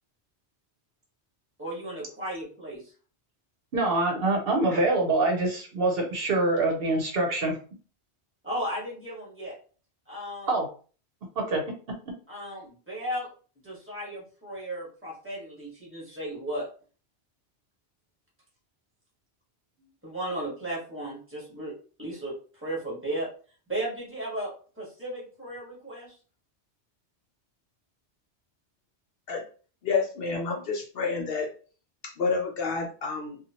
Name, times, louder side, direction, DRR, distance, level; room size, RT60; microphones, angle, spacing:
voice 1, 1.6-2.9 8.4-9.6 10.1-10.5 12.3-13.3 13.6-16.7 20.0-21.7 22.0-23.3 23.7-26.2, right 1 dB, 10° right, -5 dB, 1.2 m, -35 dB
voice 2, 3.7-7.6 10.5-10.7 11.4-12.1, right 2 dB, 60° right, 1 dB, 0.8 m, -25 dB
voice 3, 29.8-31.5 32.0-33.4, left 4 dB, 60° left, 0 dB, 0.7 m, -29 dB
2.7 x 2.4 x 2.8 m, 0.39 s
omnidirectional pair, 1.2 m